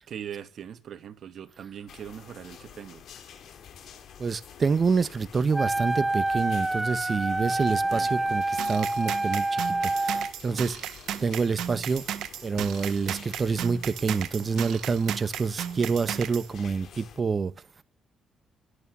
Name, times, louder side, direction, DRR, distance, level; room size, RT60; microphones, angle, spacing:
voice 1, 0.1-3.0 7.9-8.4, right 9 dB, 60° right, 2.4 m, -41 dB
sound 1, 1.9-17.2, left 8 dB, 70° left, 3.3 m, -49 dB
voice 2, 4.2-12.0 12.4-17.5, right 5 dB, 40° right, 1.3 m, -27 dB
Wind instrument woodwind instrument, 5.5-10.3, right 2 dB, 10° right, 0.6 m, -27 dB
sound 2, 8.6-16.5, right 11 dB, 80° right, 1.5 m, -35 dB
23.0 x 8.6 x 5.4 m
cardioid pair, 90°, 0 cm